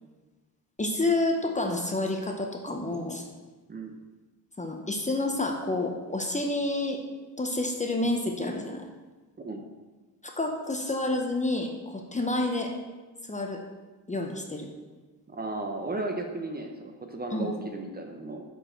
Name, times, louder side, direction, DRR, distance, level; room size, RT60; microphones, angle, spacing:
voice 1, 0.8-3.2 4.6-7.0 7.4-8.8 10.2-12.7 13.2-13.6 14.1-14.7 17.3-17.5, left 2 dB, 20° left, 2 dB, 0.7 m, -29 dB
voice 2, 15.3-18.4, right 2 dB, 25° right, 3 dB, 0.8 m, -35 dB
6.3 x 5.3 x 4.4 m, 1.2 s
cardioid pair, 95°, 41 cm